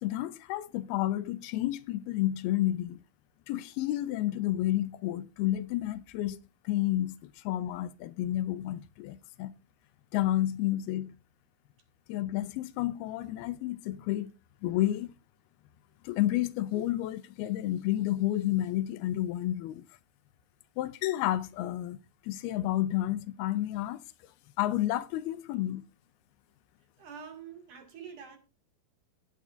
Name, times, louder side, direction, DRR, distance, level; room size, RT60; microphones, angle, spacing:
voice 1, 0.0-3.0 3.5-6.4 6.7-9.5 10.1-11.1 12.1-14.3 14.6-15.1 16.0-19.8 20.8-22.0 22.2-24.0 24.6-25.8, left 14 dB, 85° left, 2.6 m, -30 dB
voice 2, 27.0-28.4, right 7 dB, 60° right, 3.6 m, -46 dB
21.0 x 8.9 x 2.6 m
omnidirectional pair, 4.4 m